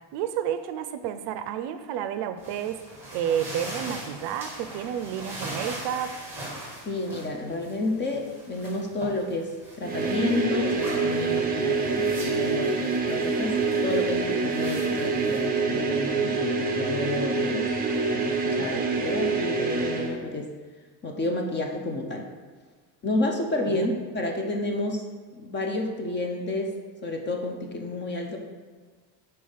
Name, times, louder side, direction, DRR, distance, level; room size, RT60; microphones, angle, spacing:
voice 1, 0.1-2.8 3.1-6.1 18.6-18.7 23.7-23.8, right 9 dB, 60° right, 10 dB, 0.5 m, -30 dB
sound 1, 2.4-16.0, right 1 dB, 5° right, 1.7 m, -41 dB
voice 2, 6.9-9.5 9.8-17.7 18.1-20.5 21.0-22.3 23.0-25.0 25.3-26.7 27.0-28.4, left 2 dB, 25° left, 2 dB, 0.5 m, -30 dB
sound 2, 9.8-20.2, right 4 dB, 20° right, 0.6 m, -26 dB
5.1 x 4.1 x 5.5 m, 1.5 s
cardioid pair, 150°, 46 cm